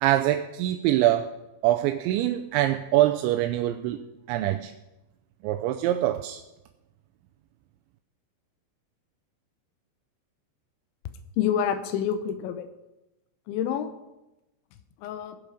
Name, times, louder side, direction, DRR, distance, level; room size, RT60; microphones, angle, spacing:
voice 1, 0.0-1.3 1.6-4.0 4.3-4.7 5.4-6.4, right 14 dB, 85° right, 2.9 m, -24 dB
voice 2, 11.4-12.7 13.5-13.9 15.0-15.4, left 9 dB, 85° left, 3.3 m, -27 dB
18.0 x 8.3 x 5.2 m
omnidirectional pair, 5.2 m